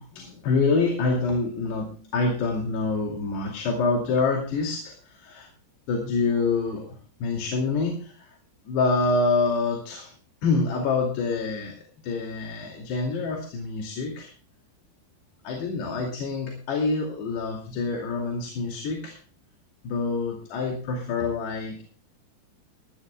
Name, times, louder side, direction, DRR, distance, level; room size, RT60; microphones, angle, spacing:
voice 1, 0.0-5.5 5.9-8.4 8.7-10.1 10.4-11.8 12.0-14.3 15.4-19.2 19.8-21.8, left 3 dB, 75° left, 1 dB, 4.7 m, -26 dB
20.5 x 15.5 x 2.3 m, 0.40 s
omnidirectional pair, 4.8 m